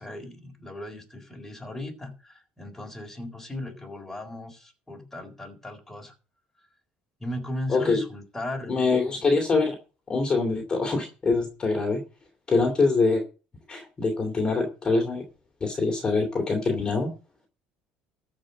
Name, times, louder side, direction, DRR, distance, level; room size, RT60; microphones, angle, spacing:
voice 1, 0.0-6.1 7.2-9.2, left 1 dB, 5° left, 1 dB, 3.9 m, -37 dB
voice 2, 7.7-8.0 8.7-9.8 10.1-12.0 12.5-13.2 13.7-15.2 15.6-17.1, left 3 dB, 25° left, 2 dB, 2.8 m, -24 dB
14.0 x 5.1 x 7.8 m, 0.35 s
cardioid pair, 120°, 3 cm